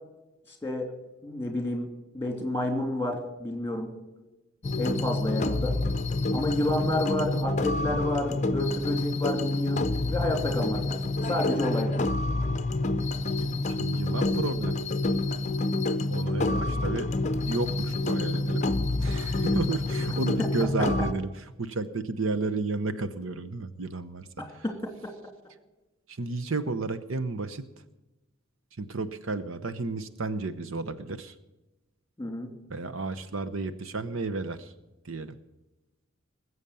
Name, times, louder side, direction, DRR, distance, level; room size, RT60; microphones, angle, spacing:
voice 1, 1.2-1.9 2.1-3.9 4.8-5.8 6.3-12.0 16.4-16.6 24.4-24.7 32.2-32.5, left 1 dB, 10° left, 4 dB, 3.0 m, -30 dB
sound 1, 4.6-21.1, left 2 dB, 35° left, 0.7 m, -28 dB
voice 2, 13.8-14.8 16.1-17.1 17.5-18.7 19.0-21.3 21.6-24.3 26.1-27.6 28.8-31.3 32.7-34.7 35.0-35.4, right 3 dB, 65° right, 12 dB, 0.9 m, -32 dB
20.0 x 8.1 x 7.0 m, 1.0 s
head